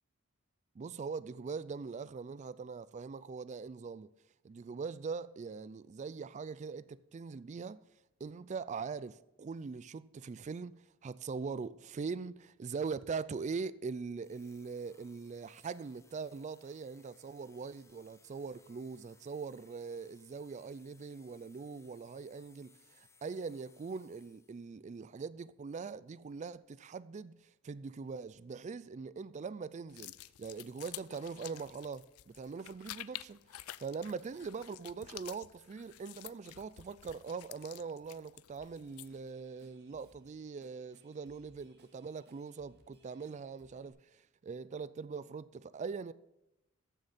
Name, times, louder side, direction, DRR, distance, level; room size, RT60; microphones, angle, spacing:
voice 1, 0.8-4.1 4.4-7.8 8.2-27.4 27.6-46.1, right 5 dB, 35° right, 0.3 m, -42 dB
sound 1, 14.2-24.8, left 4 dB, 15° left, 0.8 m, -66 dB
sound 2, 29.9-39.3, left 15 dB, 85° left, 0.4 m, -50 dB
Drum kit / Drum, 38.6-43.9, right 1 dB, 50° right, 2.0 m, -68 dB
14.0 x 6.4 x 4.2 m
head